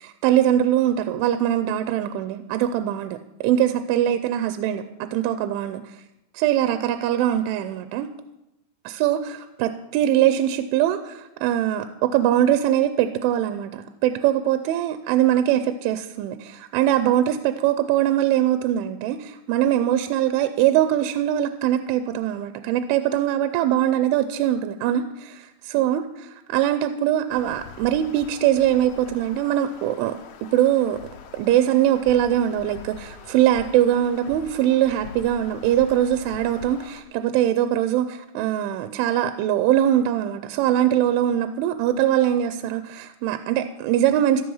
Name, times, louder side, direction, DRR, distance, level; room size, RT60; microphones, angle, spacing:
voice 1, 0.0-6.0 6.3-8.1 8.9-26.0 26.5-30.2 30.5-31.0 31.3-44.4, right 11 dB, 85° right, 9 dB, 3.0 m, -22 dB
sound 1, 27.3-37.0, left 6 dB, 70° left, 2.5 m, -43 dB
14.0 x 13.0 x 5.6 m, 0.91 s
omnidirectional pair, 5.5 m